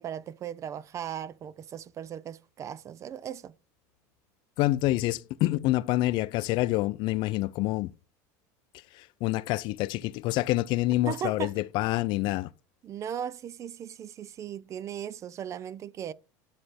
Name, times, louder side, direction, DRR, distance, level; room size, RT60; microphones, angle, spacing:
voice 1, 0.0-3.6 11.1-11.5 12.8-16.1, right 9 dB, 30° right, 0.4 m, -37 dB
voice 2, 4.6-7.9 8.9-12.5, left 17 dB, 55° left, 0.4 m, -27 dB
9.7 x 3.3 x 4.2 m
supercardioid pair, 120°, 10 cm